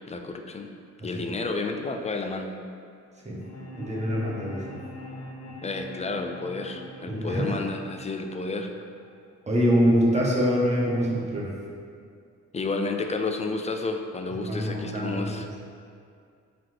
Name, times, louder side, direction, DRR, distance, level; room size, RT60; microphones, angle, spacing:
voice 1, 0.1-0.7 1.0-2.6 5.6-8.7 12.5-15.6, left 3 dB, 20° left, 4 dB, 0.4 m, -31 dB
sound 1, 3.4-9.4, left 2 dB, 55° left, 1.2 m, -43 dB
voice 2, 3.7-4.8 7.1-7.6 9.5-11.5 14.5-15.3, equal, 20° right, -4 dB, 1.1 m, -24 dB
8.5 x 4.2 x 3.3 m, 2.3 s
wide cardioid pair, 165°, 31 cm